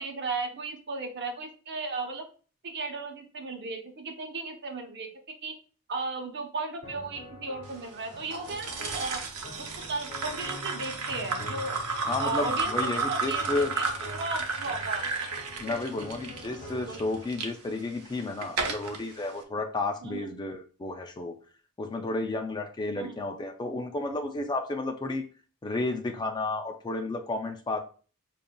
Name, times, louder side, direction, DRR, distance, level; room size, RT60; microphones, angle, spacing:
voice 1, 0.0-2.2 2.6-5.1 5.4-5.6 5.9-9.2 9.6-11.8 12.2-15.1 16.7-17.0 20.0-20.3 22.9-23.2, right 3 dB, 50° right, 3 dB, 0.9 m, -35 dB
sound 1, 6.8-17.3, left 1 dB, 45° left, 1.4 m, -45 dB
sound 2, 8.3-17.5 18.0-19.0, right 4 dB, 90° right, 0.8 m, -33 dB
voice 2, 12.1-13.7 15.6-21.4 21.8-25.3 25.6-27.8, left 2 dB, 20° left, 4 dB, 0.4 m, -32 dB
6.8 x 2.5 x 2.3 m, 0.39 s
head